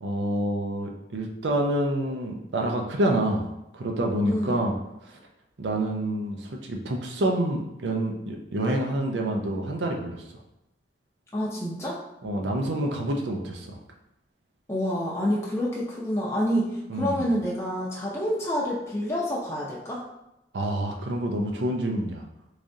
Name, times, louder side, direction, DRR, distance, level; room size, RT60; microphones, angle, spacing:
voice 1, 0.0-3.5 3.7-4.7 5.0-5.2 5.6-10.4 12.2-13.8 16.9-17.3 20.5-22.2, right 1 dB, 80° right, 1 dB, 0.6 m, -27 dB
voice 2, 4.3-4.6 11.3-12.0 14.7-20.0, equal, 15° left, -5 dB, 0.5 m, -28 dB
3.6 x 3.2 x 2.6 m, 0.87 s
head